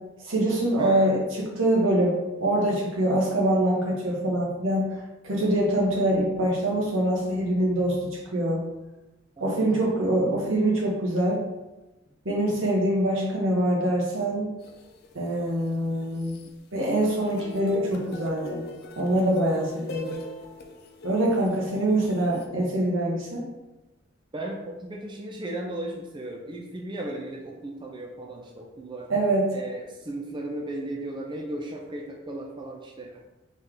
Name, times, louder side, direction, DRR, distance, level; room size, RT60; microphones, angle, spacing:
voice 1, 0.2-4.9 5.2-8.7 9.4-11.4 12.2-14.5 15.1-16.3 16.7-18.6 19.0-20.2 21.0-23.4 29.1-29.5, right 1 dB, 85° right, -3 dB, 1.3 m, -24 dB
voice 2, 0.8-1.2 9.4-9.5 24.3-29.1 29.5-33.1, right 1 dB, 25° right, 0 dB, 0.5 m, -36 dB
sound 1, 14.6-16.5 16.8-22.5, left 2 dB, 55° left, 0.5 m, -40 dB
4.0 x 3.4 x 3.7 m, 1.0 s
head